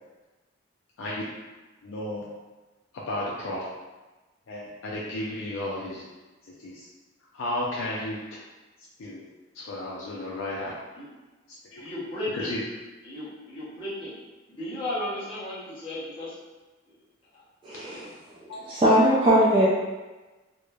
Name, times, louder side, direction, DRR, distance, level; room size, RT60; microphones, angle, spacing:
voice 1, 1.8-2.2 2.9-3.7 4.5-6.0 6.6-6.9 7.3-8.2 9.0-9.2 9.5-10.7 11.7-11.8 12.3-12.6 18.5-18.7, left 1 dB, 85° left, -5 dB, 0.4 m, -33 dB
voice 2, 11.8-12.5 13.0-14.1 14.5-16.4 17.3-17.4, left 1 dB, 25° left, -10 dB, 0.8 m, -34 dB
voice 3, 17.6-18.1 18.7-19.7, equal, 25° right, -8 dB, 0.3 m, -20 dB
3.0 x 2.0 x 2.2 m, 1.2 s
head